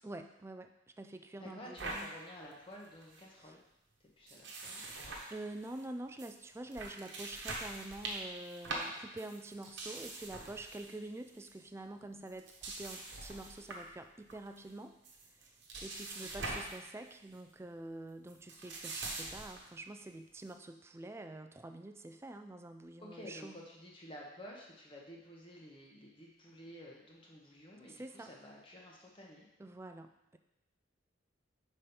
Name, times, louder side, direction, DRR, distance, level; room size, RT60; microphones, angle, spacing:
voice 1, 0.0-0.7 1.0-2.1 3.4-3.5 5.3-15.0 15.3-15.5 15.8-23.6 27.9-28.3 29.6-30.4, right 2 dB, 15° right, 7 dB, 0.3 m, -47 dB
voice 2, 1.4-3.6 4.2-4.8 16.2-16.6 23.0-29.4, equal, 25° left, -2 dB, 0.9 m, -51 dB
sound 1, 1.8-2.1 2.5-2.6 2.8-3.2 4.3-5.9 6.2-6.3 6.7-11.0 11.3-11.5 12.3-13.9 14.3-14.7 15.0-16.8 17.1-17.4 18.3-19.7, right 2 dB, 65° right, 1.1 m, -43 dB
5.0 x 4.3 x 5.4 m, 0.87 s
head